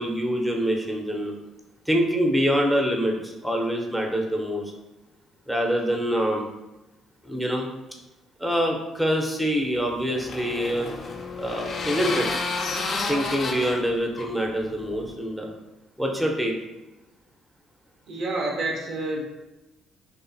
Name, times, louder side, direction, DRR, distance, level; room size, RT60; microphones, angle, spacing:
voice 1, 0.0-1.3 1.9-4.6 5.5-6.4 7.2-7.7 8.4-10.9 11.4-12.3 13.1-15.5 16.0-16.6, equal, 5° right, 1 dB, 0.5 m, -25 dB
sound 1, 9.6-15.1, left 3 dB, 50° left, 0.3 m, -31 dB
voice 2, 18.1-19.2, right 2 dB, 65° right, 0 dB, 0.5 m, -28 dB
2.5 x 2.3 x 2.5 m, 1.0 s
hypercardioid pair, 55°, 0 cm